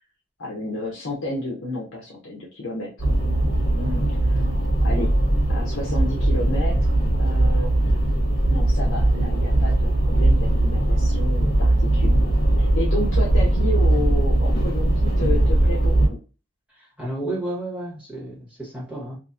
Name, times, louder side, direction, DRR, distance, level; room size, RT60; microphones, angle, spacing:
voice 1, 0.4-3.1 3.5-4.0 4.3-4.4 4.8-5.1 5.5-8.0 8.5-12.3 12.6-16.2, left 2 dB, 80° left, 0.7 m, -31 dB
sound 1, 3.0-16.1, right 1 dB, 45° left, 1.2 m, -20 dB
voice 2, 17.0-19.2, right 1 dB, 5° right, 1.3 m, -31 dB
2.8 x 2.4 x 2.3 m
head